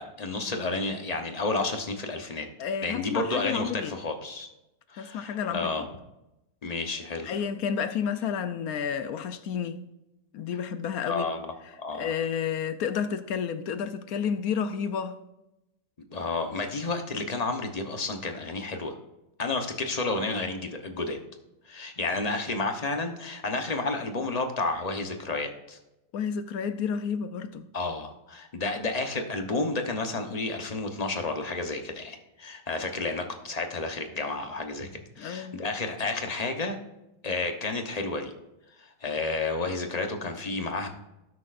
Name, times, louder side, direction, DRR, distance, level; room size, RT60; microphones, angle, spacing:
voice 1, 0.0-2.5 2.8-4.5 4.9-5.8 6.6-7.4 11.0-11.5 11.8-12.1 16.1-19.0 19.4-21.2 21.7-25.8 27.7-36.8 37.2-38.3 38.8-40.9, left 3 dB, 30° left, 0.7 m, -31 dB
voice 2, 2.6-3.9 4.9-5.7 7.2-9.8 10.3-11.3 11.9-15.2 26.1-27.7 35.2-35.6, left 7 dB, 70° left, 1.0 m, -31 dB
17.5 x 6.3 x 2.5 m
omnidirectional pair, 1.9 m